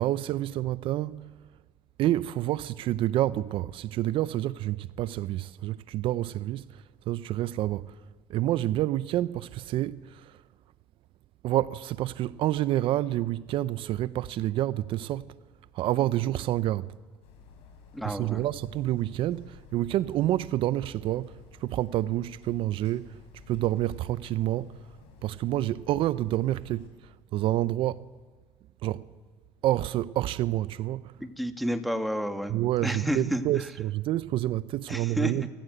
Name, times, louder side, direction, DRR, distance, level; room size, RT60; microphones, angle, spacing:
voice 1, 0.0-1.3 2.0-7.9 8.3-10.4 11.4-15.3 15.7-16.9 18.0-23.2 23.5-24.8 25.2-28.1 28.8-29.1 29.6-31.1 32.5-35.5, right 14 dB, 60° right, 0.6 m, -28 dB
sound 1, 17.2-26.9, left 6 dB, 70° left, 5.5 m, -52 dB
voice 2, 17.9-18.5 31.2-32.6 32.8-33.4 34.9-35.3, equal, ahead, 2.1 m, -30 dB
28.5 x 14.5 x 8.0 m
supercardioid pair, 80°, 10 cm